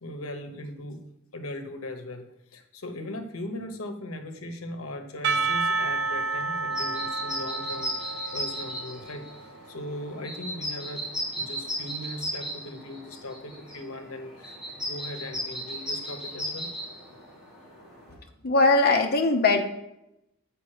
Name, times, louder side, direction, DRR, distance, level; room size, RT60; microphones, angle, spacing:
voice 1, 0.0-1.0 1.3-11.1 11.3-16.7, left 1 dB, 80° left, 6 dB, 1.0 m, -39 dB
Percussion / Church bell, 5.2-9.8, right 3 dB, 55° right, 0.5 m, -30 dB
sound 1, 6.7-18.1, equal, 5° right, 2.6 m, -36 dB
voice 2, 18.4-19.6, left 3 dB, 45° left, 3 dB, 0.9 m, -20 dB
7.4 x 5.2 x 4.9 m, 0.86 s
head